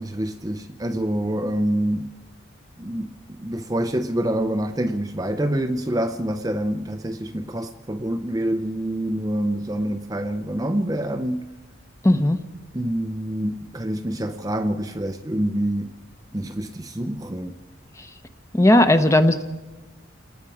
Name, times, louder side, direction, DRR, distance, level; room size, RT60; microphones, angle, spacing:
voice 1, 0.0-2.1 2.8-3.1 3.4-11.5 12.7-15.9 16.3-17.5, right 1 dB, 20° right, 0.6 m, -26 dB
voice 2, 12.0-12.4 18.0-18.1 18.5-19.4, left 1 dB, 15° left, 0.9 m, -16 dB
28.5 x 20.0 x 4.9 m
head